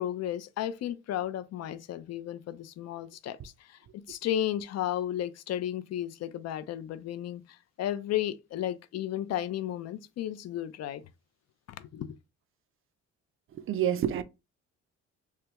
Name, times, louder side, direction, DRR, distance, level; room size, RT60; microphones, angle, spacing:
voice 1, 0.0-11.0 11.7-12.1, left 11 dB, 60° left, 0.4 m, -34 dB
voice 2, 13.6-14.2, right 10 dB, 45° right, 0.4 m, -28 dB
3.2 x 2.2 x 2.9 m
cardioid pair, 90°, 30 cm